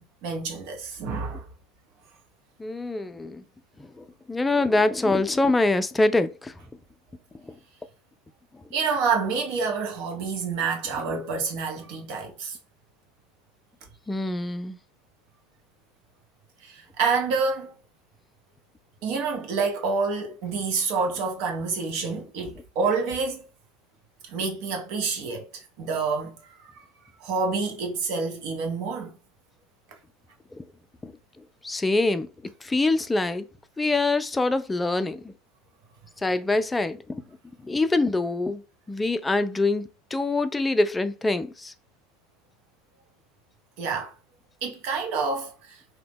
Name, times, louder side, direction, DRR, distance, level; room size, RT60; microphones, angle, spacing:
voice 1, 0.0-1.5 8.7-12.6 16.6-17.7 19.0-23.5 24.3-26.8 27.2-29.1 43.8-44.1 44.6-45.8, right 4 dB, 60° right, 0.8 m, -28 dB
voice 2, 2.6-3.4 3.8-6.5 7.5-7.6 14.1-14.8 30.6-30.7 31.0-31.1 31.6-32.3 32.6-33.5 33.8-35.3 36.2-37.2 37.6-38.6 38.9-41.7, left 2 dB, 15° left, 0.3 m, -24 dB
2.8 x 2.1 x 3.4 m
hypercardioid pair, 80°, 0 cm